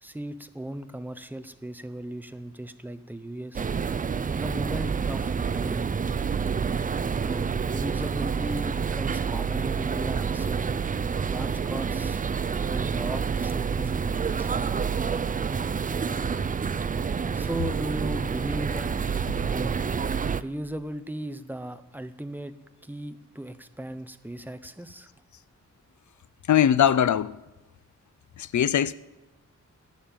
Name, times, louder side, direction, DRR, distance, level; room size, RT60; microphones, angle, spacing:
voice 1, 0.0-3.6 4.4-5.9 7.2-10.7 11.3-12.2 12.6-14.5 17.3-18.9 19.5-19.9 20.4-22.5 22.8-25.1, right 1 dB, 5° right, 0.8 m, -36 dB
sound 1, 3.5-20.4, right 6 dB, 25° right, 0.4 m, -28 dB
voice 2, 26.5-27.3 28.4-28.9, left 9 dB, 70° left, 0.5 m, -21 dB
12.0 x 10.0 x 8.9 m
wide cardioid pair, 135°, 31 cm